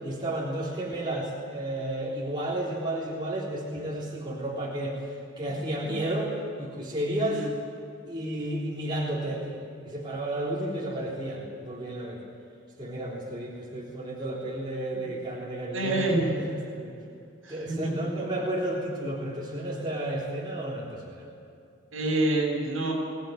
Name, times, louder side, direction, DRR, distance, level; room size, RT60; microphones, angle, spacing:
voice 1, 0.0-5.0 5.4-7.4 8.1-12.2 12.8-16.9 17.5-21.3, right 1 dB, 20° right, -5 dB, 3.7 m, -32 dB
voice 2, 7.2-7.5 10.6-10.8 14.9-15.1 15.7-16.4 17.4-18.3 21.9-22.9, right 1 dB, 70° right, 0 dB, 6.9 m, -28 dB
23.0 x 18.0 x 9.3 m, 2.5 s
head